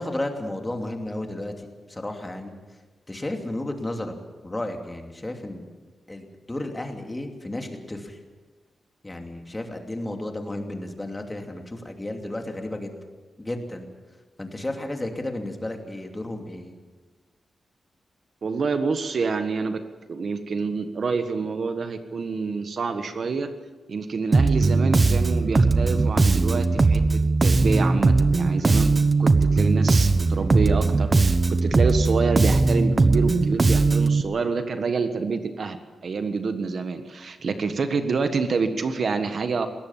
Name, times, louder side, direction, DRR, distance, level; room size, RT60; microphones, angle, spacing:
voice 1, 0.0-2.5 3.1-4.1 4.4-5.6 6.1-8.2 9.0-12.9 13.4-13.9 14.4-16.8, left 1 dB, 15° left, 3 dB, 2.7 m, -33 dB
voice 2, 18.4-19.8 20.1-23.5 23.9-28.9 29.2-35.8 36.0-39.7, right 4 dB, 55° right, 8 dB, 1.4 m, -27 dB
Bass guitar, 24.3-34.2, right 3 dB, 30° right, 1.0 m, -19 dB
21.5 x 17.5 x 7.4 m, 1.3 s
wide cardioid pair, 110°, 0 cm